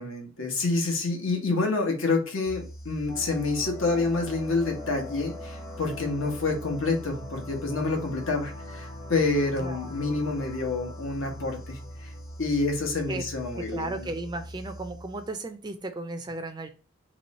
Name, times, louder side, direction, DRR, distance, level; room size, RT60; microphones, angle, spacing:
voice 1, 0.0-11.8 12.4-14.1, left 3 dB, 75° left, 3 dB, 1.0 m, -28 dB
sound 1, 2.4-15.6, right 1 dB, 35° left, 1.2 m, -43 dB
sound 2, 3.1-14.1, left 3 dB, 15° left, 0.6 m, -45 dB
voice 2, 9.6-9.9 13.1-13.2 13.6-16.7, right 2 dB, 20° right, 7 dB, 0.3 m, -35 dB
3.1 x 3.0 x 4.0 m, 0.34 s
head